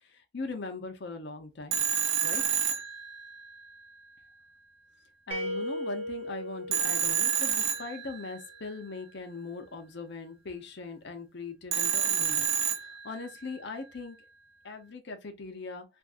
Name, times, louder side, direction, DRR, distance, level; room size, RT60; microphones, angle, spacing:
voice 1, 0.1-1.8 2.2-2.4 5.3-12.5 12.7-14.2 14.6-15.9, left 3 dB, 65° left, 0.8 m, -40 dB
Telephone, 1.7-3.6 6.7-8.5 11.7-13.4, right 8 dB, 80° right, 0.7 m, -29 dB
sound 1, 5.3-8.2, equal, 35° right, 0.7 m, -37 dB
3.5 x 2.6 x 2.5 m
head